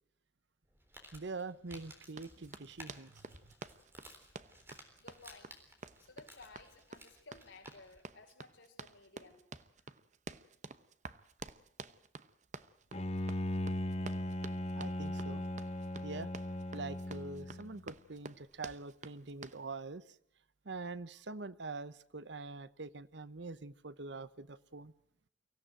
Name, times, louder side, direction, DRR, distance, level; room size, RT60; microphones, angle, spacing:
Crumpling crinkling, 0.6-8.1, right 1 dB, 10° right, 3.7 m, -57 dB
voice 1, 1.1-3.2 14.8-15.4 16.0-16.3 16.7-20.2 20.6-24.9, right 3 dB, 65° right, 15 dB, 0.9 m, -44 dB
Run, 2.1-19.6, right 4 dB, 40° right, 0.8 m, -50 dB
voice 2, 5.0-5.6 6.0-9.4, left 3 dB, 80° left, 3 dB, 4.8 m, -57 dB
Bowed string instrument, 12.9-17.9, left 1 dB, 35° left, 1.0 m, -38 dB
24.0 x 16.5 x 9.0 m, 0.67 s
head